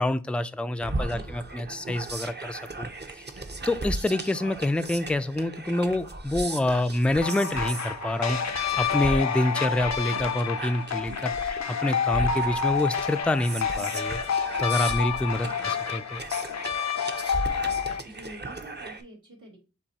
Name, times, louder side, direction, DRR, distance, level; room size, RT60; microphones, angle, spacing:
voice 1, 0.0-2.9 3.1-3.3 3.7-14.2 14.6-16.2, left 1 dB, 5° left, 0.3 m, -27 dB
sound 1, 0.8-19.0, right 2 dB, 35° right, 0.7 m, -37 dB
voice 2, 1.0-1.4 15.4-15.8 18.0-19.6, equal, 80° right, 2.5 m, -47 dB
sound 2, 7.2-18.0, left 7 dB, 65° left, 0.5 m, -29 dB
7.0 x 2.6 x 2.8 m
wide cardioid pair, 55°, 30 cm